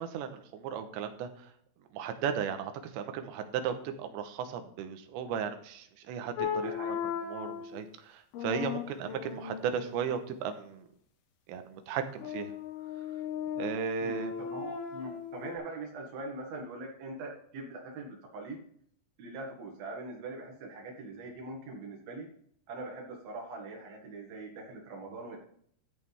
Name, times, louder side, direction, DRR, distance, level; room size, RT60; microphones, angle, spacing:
voice 1, 0.0-1.5 1.9-7.0 7.3-10.9 11.5-12.5 13.6-14.3, right 7 dB, 75° right, 7 dB, 3.0 m, -36 dB
sound 1, 6.4-7.8 8.3-10.1 12.2-15.6, left 8 dB, 70° left, 2.5 m, -37 dB
voice 2, 6.6-7.0 14.0-18.6 19.2-22.3 22.7-25.4, right 2 dB, 60° right, 0 dB, 3.2 m, -42 dB
13.5 x 9.0 x 3.5 m, 0.64 s
omnidirectional pair, 5.7 m